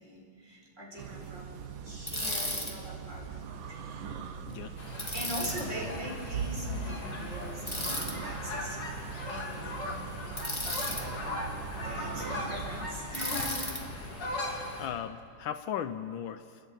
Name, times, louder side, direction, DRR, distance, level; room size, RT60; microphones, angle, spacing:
voice 1, 0.0-4.2 5.1-8.8 9.3-9.9 10.8-11.1 11.8-13.7 14.2-14.6, equal, 35° right, -3 dB, 5.1 m, -42 dB
sound 1, 1.0-12.9, right 6 dB, 75° right, 1.8 m, -41 dB
Bicycle, 2.1-2.7 5.0-5.6 7.7-8.1 10.4-11.0 13.1-13.8, left 1 dB, 15° left, 2.1 m, -34 dB
sound 2, 4.8-14.9, left 1 dB, 55° left, 3.4 m, -38 dB
voice 2, 14.8-16.6, left 9 dB, 75° left, 10 dB, 1.5 m, -37 dB
27.5 x 10.5 x 9.1 m, 2.1 s
omnidirectional pair, 2.3 m